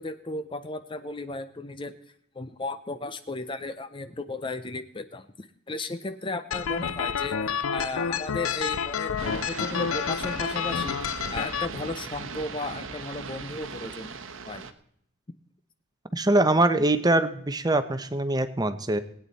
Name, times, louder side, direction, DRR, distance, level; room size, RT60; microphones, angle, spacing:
voice 1, 0.0-1.9 2.3-11.0 11.3-14.2 14.4-14.7, left 2 dB, 25° left, 11 dB, 0.5 m, -35 dB
sound 1, 6.5-11.7, left 7 dB, 75° left, 0.5 m, -29 dB
sound 2, 9.2-14.7, right 4 dB, 65° right, 1.1 m, -38 dB
voice 2, 16.1-19.0, right 2 dB, 20° right, 11 dB, 0.8 m, -23 dB
20.0 x 9.1 x 4.1 m, 0.68 s
head